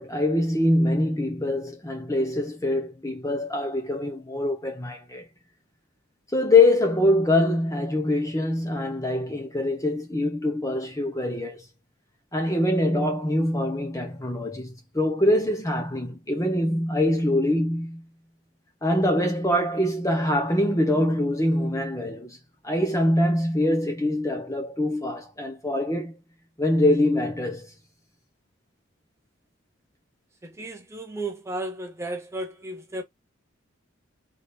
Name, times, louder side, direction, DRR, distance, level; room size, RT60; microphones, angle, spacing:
voice 1, 0.0-5.3 6.3-11.6 12.3-18.0 18.8-22.4 22.6-26.1 26.6-27.7, left 1 dB, 15° left, 1.1 m, -24 dB
voice 2, 30.4-33.0, right 1 dB, 15° right, 0.8 m, -34 dB
4.2 x 3.1 x 3.4 m
head